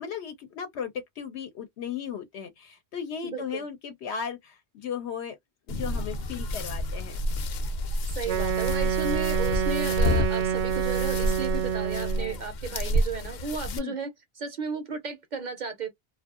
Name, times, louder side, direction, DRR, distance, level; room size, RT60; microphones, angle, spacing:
voice 1, 0.0-5.4 5.7-7.2 13.7-13.9, left 7 dB, 75° left, 0.8 m, -36 dB
voice 2, 3.2-3.6 8.0-15.9, right 5 dB, 50° right, 0.6 m, -34 dB
sound 1, 5.7-13.8, left 1 dB, 55° left, 0.5 m, -29 dB
Wind instrument woodwind instrument, 8.2-12.4, right 8 dB, 75° right, 0.9 m, -28 dB
2.6 x 2.3 x 2.3 m
omnidirectional pair, 1.1 m